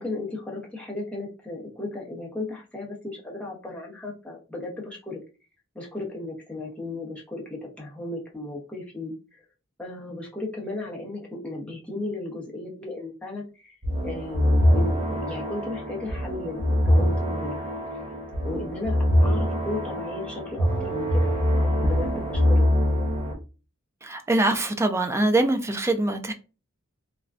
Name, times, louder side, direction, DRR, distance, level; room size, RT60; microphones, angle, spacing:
voice 1, 0.0-5.2 5.7-9.4 9.8-17.6 18.4-19.0 19.2-22.6, left 2 dB, 5° left, -3 dB, 0.8 m, -35 dB
sound 1, 13.8-23.3, equal, 35° right, 0.7 m, -23 dB
voice 2, 24.0-26.3, right 2 dB, 15° right, 7 dB, 0.3 m, -23 dB
3.3 x 2.2 x 2.4 m, 0.33 s
head